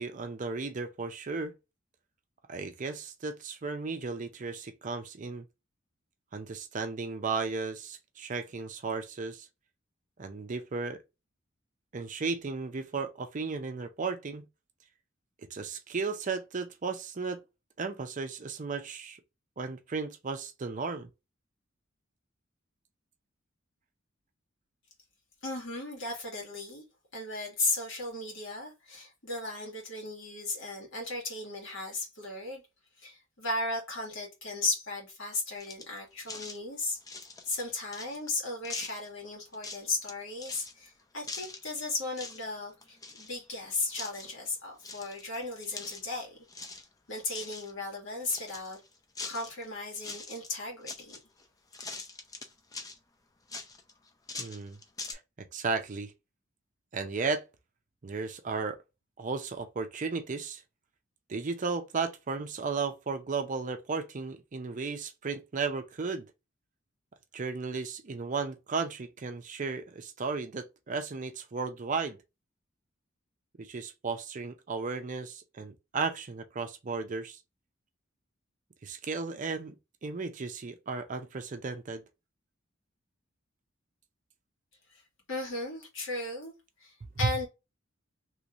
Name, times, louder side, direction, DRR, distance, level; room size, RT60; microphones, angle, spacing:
voice 1, 0.0-1.5 2.5-5.4 6.3-9.5 10.2-11.0 11.9-14.5 15.5-17.4 17.8-19.2 19.6-21.1 54.4-54.8 55.5-56.1 56.9-57.4 58.0-58.8 59.2-60.6 61.3-66.3 67.3-72.2 73.6-77.4 78.8-79.8 80.0-82.0 87.2-87.3, right 4 dB, 40° right, 0.5 m, -34 dB
voice 2, 25.4-26.8 27.1-32.6 33.0-37.0 37.4-46.4 47.1-48.8 49.2-51.2 85.3-86.5 86.8-87.5, left 2 dB, 70° left, 1.9 m, -36 dB
sound 1, 35.6-36.0 36.2-36.6 37.0-38.3 38.6-39.1 39.5-40.1 40.4-40.7 41.3-41.8 42.1-42.4 42.7-43.6 43.9-44.3 44.8-46.2 46.5-46.9 47.2-47.7 48.3-49.6 49.9-50.5 50.9-51.4 51.7-53.0 53.5-55.1, left 3 dB, 20° left, 0.5 m, -42 dB
3.1 x 3.1 x 2.5 m
head